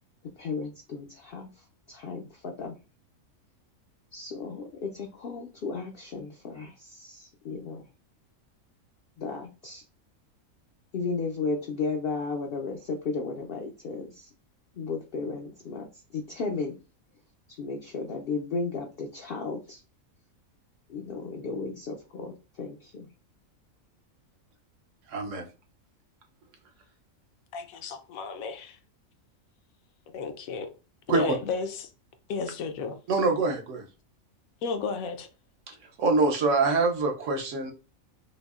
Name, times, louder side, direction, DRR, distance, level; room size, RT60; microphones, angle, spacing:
voice 1, 0.4-2.7 4.1-7.8 9.2-9.8 10.9-14.3 14.7-16.8 17.6-19.8 20.9-23.1, left 4 dB, 65° left, 0.5 m, -34 dB
voice 2, 25.1-25.5 31.1-31.3 33.1-33.8 35.7-37.7, right 3 dB, 65° right, 1.0 m, -25 dB
voice 3, 27.5-28.8 30.1-30.7 31.1-31.9 32.3-33.0 34.6-35.3, left 4 dB, 80° left, 1.0 m, -32 dB
5.2 x 2.0 x 2.4 m
omnidirectional pair, 1.4 m